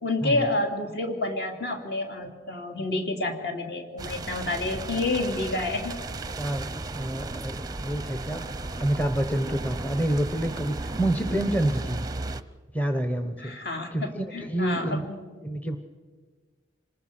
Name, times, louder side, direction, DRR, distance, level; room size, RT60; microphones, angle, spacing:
voice 1, 0.0-5.9 13.4-15.2, left 2 dB, 55° left, 3 dB, 2.9 m, -29 dB
sound 1, 4.0-12.4, right 2 dB, 20° right, 0.6 m, -35 dB
voice 2, 6.4-12.1 12.7-13.6 13.9-15.1 15.4-15.8, right 1 dB, 10° left, 7 dB, 0.9 m, -28 dB
26.5 x 20.0 x 6.0 m, 1.4 s
head